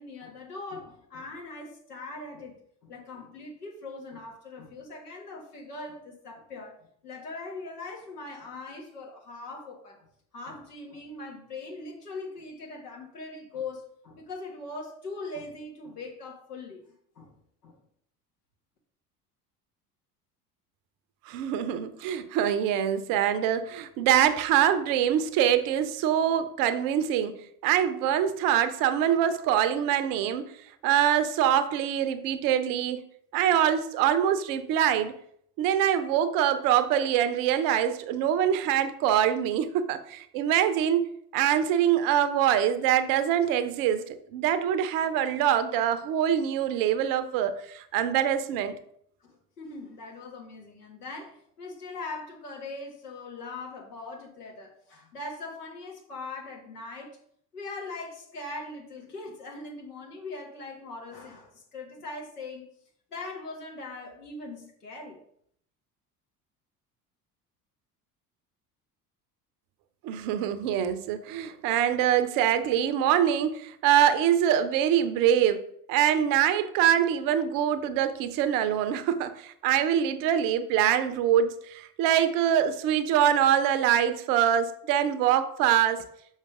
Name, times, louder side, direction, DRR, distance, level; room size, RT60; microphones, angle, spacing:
voice 1, 0.0-6.8 7.0-10.1 10.3-16.8 17.1-17.3 17.6-17.8 49.2-57.2 57.5-62.7 63.1-65.2, left 3 dB, 75° left, 0 dB, 1.6 m, -41 dB
voice 2, 21.3-27.3 27.6-30.4 30.8-33.0 33.3-35.1 35.6-41.1 41.3-48.8 70.0-86.0, right 10 dB, 45° right, 11 dB, 0.7 m, -24 dB
6.4 x 5.1 x 3.7 m, 0.67 s
figure-of-eight pair, 60°, 46 cm